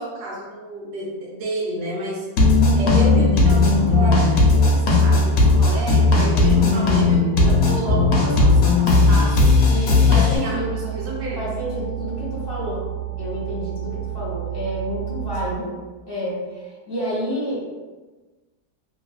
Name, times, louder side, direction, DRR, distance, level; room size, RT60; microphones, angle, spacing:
voice 1, 0.0-2.3 2.8-9.6 10.1-11.5 15.4-15.7, right 1 dB, 85° right, -4 dB, 1.2 m, -30 dB
sound 1, 2.4-10.4, left 3 dB, 70° left, 1.1 m, -16 dB
sound 2, 7.3-15.6, right 16 dB, 55° right, 0.9 m, -31 dB
voice 2, 9.7-10.7 11.4-12.9 13.2-15.7 16.1-17.7, equal, 20° left, -8 dB, 0.7 m, -29 dB
2.9 x 2.5 x 2.3 m, 1.3 s
omnidirectional pair, 1.7 m